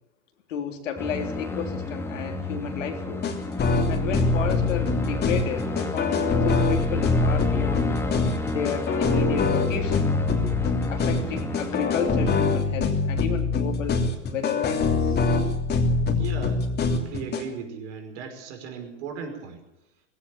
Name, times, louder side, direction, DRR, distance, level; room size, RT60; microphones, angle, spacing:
voice 1, 0.5-3.3 3.9-7.9 8.5-10.1 10.9-15.2, left 7 dB, 80° left, 4 dB, 3.6 m, -32 dB
sound 1, 1.0-12.6, left 2 dB, 5° left, 2.2 m, -31 dB
sound 2, 3.2-17.4, left 4 dB, 25° left, 3.2 m, -24 dB
voice 2, 16.2-19.6, right 6 dB, 65° right, 6 dB, 5.5 m, -37 dB
18.5 x 17.0 x 8.5 m, 0.81 s
hypercardioid pair, 115°, 37 cm